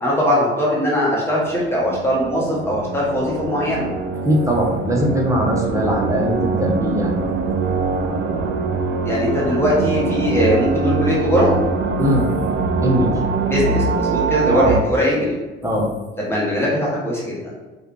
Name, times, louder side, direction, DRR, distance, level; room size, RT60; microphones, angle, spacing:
voice 1, 0.0-3.9 9.0-11.7 13.5-15.3 16.2-17.5, left 1 dB, 10° left, -6 dB, 1.2 m, -20 dB
sound 1, 1.5-14.8, right 4 dB, 40° right, 0.5 m, -23 dB
voice 2, 4.2-7.3 12.0-12.3 12.8-13.2 14.5-14.8 15.6-15.9, equal, 10° right, -2 dB, 0.9 m, -20 dB
4.9 x 2.4 x 3.1 m, 1.1 s
figure-of-eight pair, 55°, 30 cm